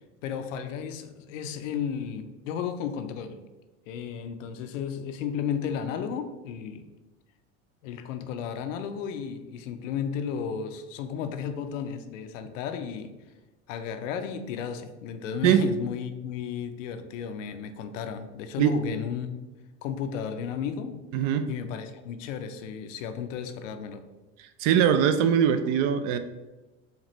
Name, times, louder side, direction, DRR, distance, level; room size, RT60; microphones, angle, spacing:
voice 1, 0.2-3.4 3.9-6.9 7.8-13.1 13.7-19.4 19.8-24.0, left 7 dB, 90° left, 8 dB, 0.5 m, -34 dB
voice 2, 15.4-15.7 18.6-18.7 21.1-21.5 24.6-26.2, right 8 dB, 60° right, 10 dB, 0.5 m, -22 dB
4.3 x 2.5 x 3.0 m, 1.1 s
supercardioid pair, 105°, 37 cm